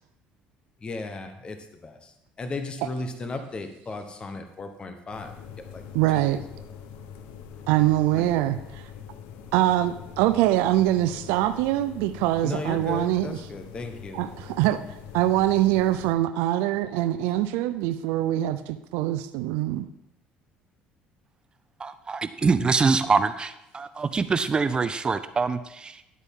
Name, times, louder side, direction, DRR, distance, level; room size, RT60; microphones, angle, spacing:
voice 1, 0.8-1.6 1.8-5.8 6.1-6.4 7.6-7.7 8.2-8.5 12.4-14.2, left 3 dB, 30° left, 7 dB, 1.0 m, -36 dB
sound 1, 5.1-16.2, left 7 dB, 85° left, 0.9 m, -43 dB
voice 2, 5.9-6.4 7.7-8.8 9.5-13.3 14.1-14.8 15.1-19.9, right 14 dB, 85° right, 11 dB, 0.4 m, -23 dB
voice 3, 21.8-26.0, right 4 dB, 25° right, 11 dB, 0.5 m, -24 dB
11.5 x 8.1 x 3.7 m, 0.85 s
cardioid pair, 100°, 3 cm